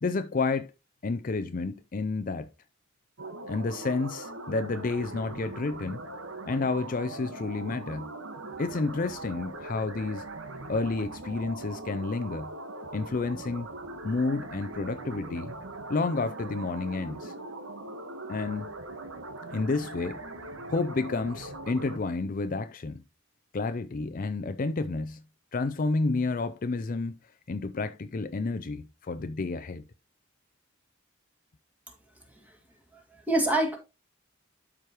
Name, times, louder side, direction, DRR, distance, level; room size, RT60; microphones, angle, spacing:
voice 1, 0.0-0.7 1.0-2.5 3.5-6.0 6.5-8.1 8.6-10.3 10.7-12.5 12.9-13.7 14.0-15.5 15.9-17.3 18.3-18.7 19.5-20.2 20.7-23.0 23.5-25.2 25.5-27.2 27.5-29.8, left 3 dB, 45° left, 0.5 m, -30 dB
sound 1, 3.2-22.0, right 2 dB, 80° right, 1.4 m, -41 dB
voice 2, 32.9-33.8, right 2 dB, 10° right, 2.0 m, -27 dB
12.0 x 5.0 x 3.0 m
head